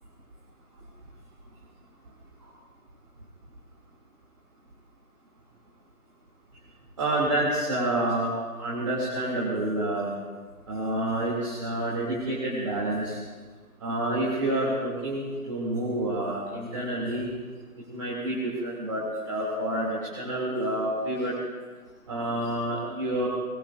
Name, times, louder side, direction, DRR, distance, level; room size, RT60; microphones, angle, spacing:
voice 1, 7.0-8.3 8.6-10.1 10.7-13.2 13.8-17.3 17.9-21.3 22.1-23.3, right 1 dB, 20° right, -6 dB, 2.6 m, -28 dB
26.0 x 21.5 x 2.6 m, 1.5 s
figure-of-eight pair, 160°, 46 cm